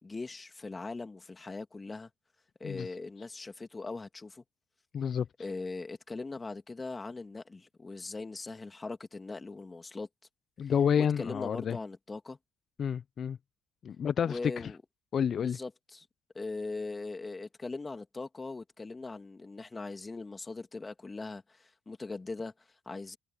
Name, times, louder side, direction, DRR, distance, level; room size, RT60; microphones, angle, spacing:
voice 1, 0.0-2.1 2.6-4.4 5.4-10.1 10.6-12.4 14.2-14.8 15.3-16.1 16.3-23.2, left 3 dB, 25° left, 3.1 m, -40 dB
voice 2, 4.9-5.3 10.6-11.8 12.8-13.4 13.8-14.4 15.1-15.6, left 8 dB, 50° left, 0.9 m, -29 dB
hypercardioid pair, 60°, 0 cm